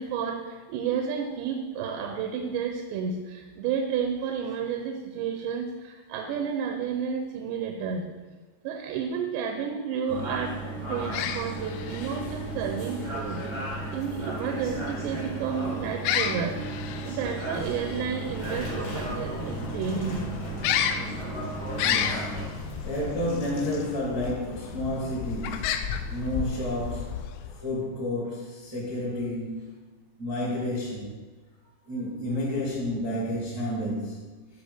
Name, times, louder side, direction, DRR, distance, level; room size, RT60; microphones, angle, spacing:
voice 1, 0.0-8.1 8.6-10.6 10.9-16.6 17.1-20.3, right 6 dB, 85° right, 3 dB, 2.8 m, -31 dB
sound 1, 10.1-22.4, right 2 dB, 55° right, 0.3 m, -35 dB
sound 2, 10.9-27.7, left 8 dB, 85° left, 2.6 m, -34 dB
sound 3, 16.7-24.0, left 1 dB, 65° left, 2.8 m, -40 dB
voice 2, 21.8-22.5 22.8-29.9 30.2-31.2 31.8-34.3, left 1 dB, 10° left, -8 dB, 1.4 m, -31 dB
10.0 x 5.2 x 3.6 m, 1.3 s
omnidirectional pair, 5.2 m